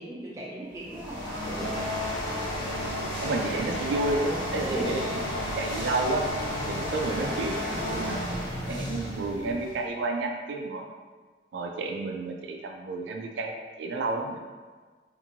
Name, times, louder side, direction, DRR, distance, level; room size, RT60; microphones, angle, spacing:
voice 1, 0.0-1.7 4.6-4.9, right 1 dB, 15° right, -6 dB, 0.5 m, -36 dB
sound 1, 0.7-9.9, left 1 dB, 25° left, 0.7 m, -32 dB
voice 2, 3.2-6.2 6.7-8.2 8.7-10.9 11.5-13.5 13.8-14.4, right 3 dB, 85° right, 2 dB, 0.3 m, -31 dB
2.8 x 2.5 x 2.6 m, 1.4 s
head